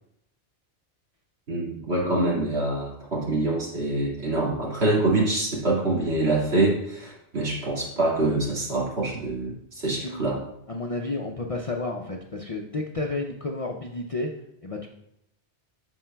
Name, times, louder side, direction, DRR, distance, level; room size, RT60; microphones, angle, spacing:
voice 1, 1.5-10.4, right 2 dB, 65° right, -4 dB, 2.3 m, -25 dB
voice 2, 10.0-10.4 10.7-14.3 14.6-14.9, left 2 dB, 45° left, 1 dB, 0.5 m, -31 dB
13.5 x 4.5 x 2.2 m, 0.78 s
omnidirectional pair, 1.2 m